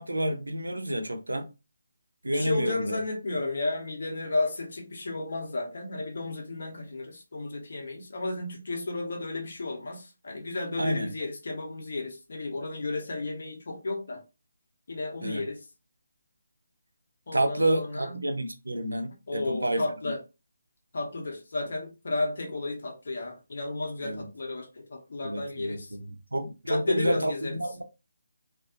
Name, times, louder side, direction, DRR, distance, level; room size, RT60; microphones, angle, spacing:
voice 1, 0.0-1.5 2.2-3.0 10.8-11.1 15.2-15.4 17.3-19.8 24.0-24.2 25.2-25.8 26.3-27.3 27.6-27.8, right 1 dB, 90° right, 0.6 m, -29 dB
voice 2, 2.3-14.2 14.9-15.6 17.3-18.3 19.3-20.2 20.9-25.9 26.7-27.6, left 2 dB, 60° left, 1.0 m, -33 dB
2.5 x 2.5 x 2.5 m
figure-of-eight pair, 155°, 0 cm